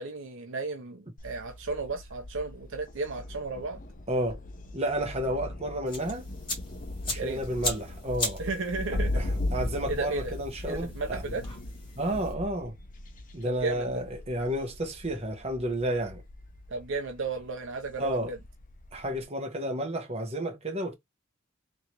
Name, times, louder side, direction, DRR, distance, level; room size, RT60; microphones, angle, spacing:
voice 1, 0.0-3.8 7.2-7.4 8.4-9.2 9.9-10.3 10.7-11.4 13.4-14.0 16.7-18.4, right 3 dB, 65° right, 0.8 m, -34 dB
Thunder, 1.2-19.2, left 2 dB, 40° left, 0.8 m, -38 dB
voice 2, 4.1-4.4 4.7-6.3 7.0-8.4 9.1-11.2 12.0-12.7 13.3-16.2 18.0-18.3 18.9-20.9, right 1 dB, 30° right, 1.2 m, -31 dB
sound 1, 5.9-12.3, left 2 dB, 25° left, 2.0 m, -39 dB
3.8 x 3.2 x 2.9 m
head